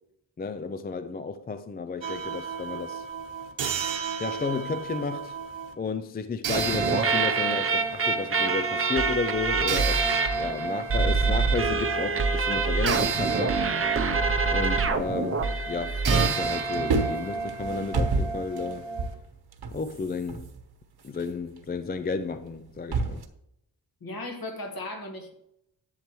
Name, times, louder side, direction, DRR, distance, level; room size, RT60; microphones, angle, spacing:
voice 1, 0.4-3.1 4.2-5.4 5.8-10.0 10.4-13.6 14.5-18.8 19.7-20.5 21.0-23.2, left 4 dB, 25° left, 0.3 m, -32 dB
sound 1, 2.0-5.7 6.4-19.1, right 5 dB, 85° right, 1.1 m, -32 dB
sound 2, 6.5-16.3, right 4 dB, 30° right, 0.6 m, -25 dB
sound 3, 14.5-16.0 16.3-23.3, right 3 dB, 60° right, 1.1 m, -32 dB
voice 2, 24.0-25.3, left 2 dB, 50° left, 1.8 m, -36 dB
10.5 x 8.1 x 3.1 m
wide cardioid pair, 145°, 44 cm